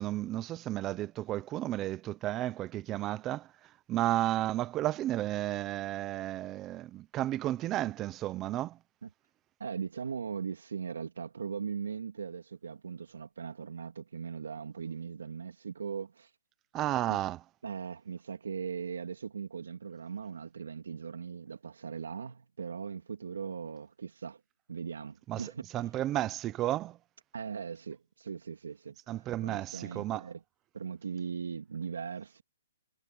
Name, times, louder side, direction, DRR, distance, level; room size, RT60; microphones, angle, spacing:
voice 1, 0.0-3.5 3.9-8.8 16.7-17.4 25.3-25.4 25.7-27.0 29.1-30.2, right 14 dB, 15° right, 0.7 m, -32 dB
voice 2, 9.6-16.3 17.1-17.2 17.6-24.4 24.7-25.9 27.3-29.0 29.4-30.4 30.7-32.4, right 6 dB, 85° right, 2.9 m, -39 dB
hypercardioid pair, 175°, 0 cm